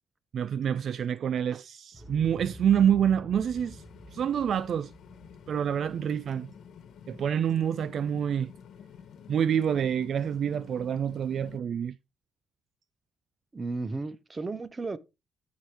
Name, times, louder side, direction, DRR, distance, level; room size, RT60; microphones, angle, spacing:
voice 1, 0.3-3.8 4.1-4.9 5.5-6.5 7.1-8.5 9.3-12.0, right 8 dB, 60° right, 0.4 m, -27 dB
Explosion, 1.9-8.0 8.3-8.4, equal, 5° right, 4.3 m, -48 dB
sound 1, 3.5-11.6, left 7 dB, 65° left, 1.2 m, -50 dB
voice 2, 13.5-15.0, right 3 dB, 25° right, 1.0 m, -34 dB
13.5 x 4.7 x 3.4 m
cardioid pair, 90°, 0 cm